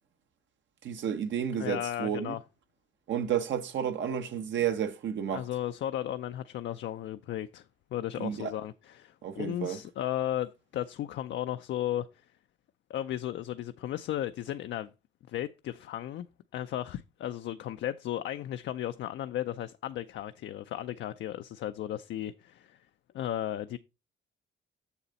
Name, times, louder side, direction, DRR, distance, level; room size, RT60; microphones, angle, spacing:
voice 1, 0.8-2.3 3.1-5.4 8.2-8.5 9.2-9.8, right 9 dB, 70° right, 1.0 m, -31 dB
voice 2, 1.5-2.4 5.3-7.6 7.9-12.1 12.9-14.9 15.3-16.3 16.5-22.8 23.1-23.8, left 12 dB, 65° left, 0.4 m, -35 dB
7.0 x 6.7 x 4.0 m
cardioid pair, 90°, 20 cm